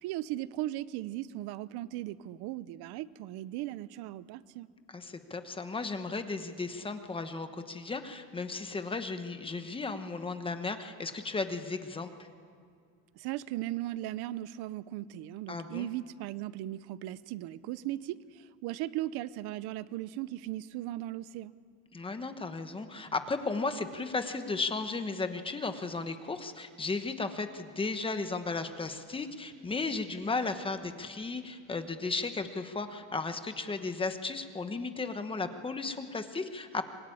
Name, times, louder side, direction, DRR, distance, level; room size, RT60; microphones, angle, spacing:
voice 1, 0.0-4.7 13.2-21.5, right 15 dB, 75° right, 17 dB, 0.8 m, -37 dB
voice 2, 4.9-12.1 15.5-15.9 21.9-36.8, left 3 dB, 15° left, 8 dB, 1.1 m, -35 dB
25.0 x 22.0 x 10.0 m, 2.2 s
cardioid pair, 170°, 38 cm